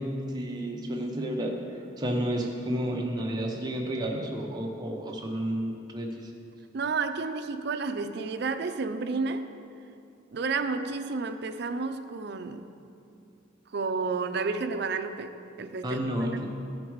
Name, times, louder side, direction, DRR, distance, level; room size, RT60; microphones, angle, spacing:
voice 1, 0.0-1.5 2.0-6.3 15.8-16.5, equal, 20° right, 0 dB, 0.8 m, -31 dB
voice 2, 6.7-9.5 10.3-12.7 13.7-16.5, right 4 dB, 55° right, 8 dB, 0.4 m, -31 dB
13.5 x 5.1 x 4.6 m, 2.7 s
head